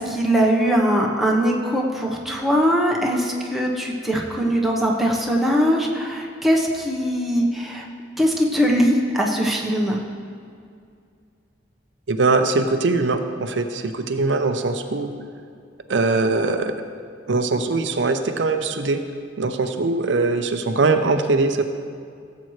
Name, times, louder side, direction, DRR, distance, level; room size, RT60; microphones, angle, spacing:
voice 1, 0.0-7.9 8.2-10.0, equal, ahead, -2 dB, 1.1 m, -21 dB
voice 2, 12.1-15.1 15.9-16.9 17.3-19.0 19.4-21.6, right 3 dB, 80° right, 7 dB, 0.6 m, -21 dB
17.0 x 7.7 x 3.2 m, 2.3 s
head